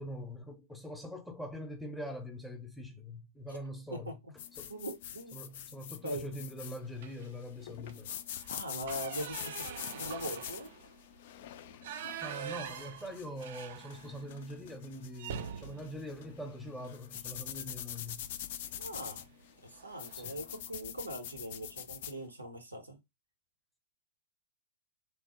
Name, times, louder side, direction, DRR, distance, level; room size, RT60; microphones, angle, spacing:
voice 1, 0.0-4.2 4.6-4.7 5.3-8.1 12.2-18.2 20.1-20.4, left 1 dB, 5° left, 0.7 m, -43 dB
voice 2, 3.9-4.3 4.7-5.4 5.7-5.8 6.0-6.2 8.5-9.7 9.9-10.7 18.8-19.3 19.6-23.0, right 1 dB, 90° right, 0.8 m, -41 dB
sound 1, 4.4-22.2, left 10 dB, 55° left, 0.3 m, -45 dB
sound 2, 7.0-7.4 7.8-7.9 8.3-14.3 14.6-14.8 15.2-17.3 18.6-18.9 19.3-19.4 19.7-20.4, right 8 dB, 60° right, 0.3 m, -45 dB
3.1 x 2.0 x 2.9 m
figure-of-eight pair, 100°, 0 cm